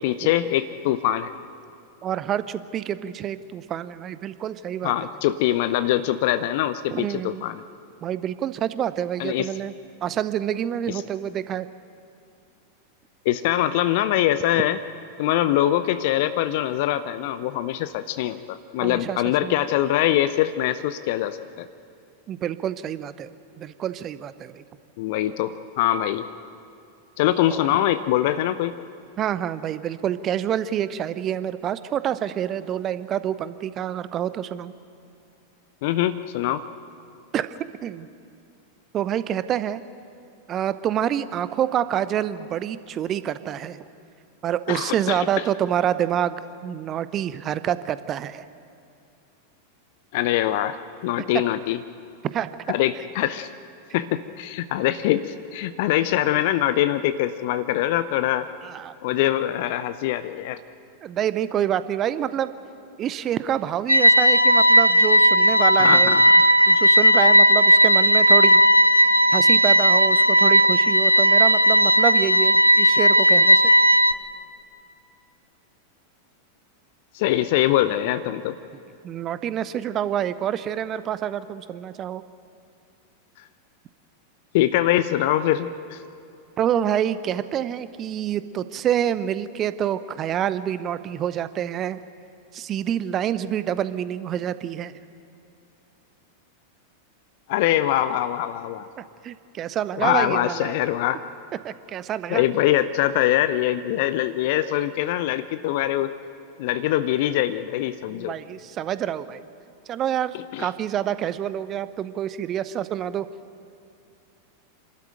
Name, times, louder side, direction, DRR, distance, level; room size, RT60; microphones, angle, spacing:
voice 1, 0.0-1.3 4.8-7.6 9.2-9.5 10.9-11.0 13.2-14.8 15.2-21.7 25.0-26.3 27.2-28.7 35.8-36.6 44.7-45.3 50.1-50.8 51.0-51.8 52.7-53.5 53.9-58.5 59.0-60.6 65.8-66.4 77.1-78.5 84.5-86.0 97.5-98.9 100.0-101.2 102.3-106.1 106.6-108.3 110.5-110.7, left 13 dB, 50° left, 13 dB, 0.6 m, -23 dB
voice 2, 2.0-4.9 6.9-7.4 8.0-9.7 10.0-11.7 18.8-19.5 22.3-23.3 23.6-24.6 27.5-27.6 29.2-34.7 37.3-38.1 38.9-39.8 40.5-43.8 44.4-48.4 52.3-52.8 58.6-58.9 61.0-62.5 63.0-66.2 66.7-68.6 69.3-73.6 79.0-82.2 86.6-92.0 92.5-94.9 99.0-100.7 101.6-102.4 108.1-109.4 109.9-113.3, right 10 dB, 30° right, 14 dB, 0.8 m, -27 dB
sound 1, 63.9-74.1, equal, 90° right, 0.5 m, -16 dB
27.0 x 13.0 x 9.1 m, 2.5 s
figure-of-eight pair, 90°, 0 cm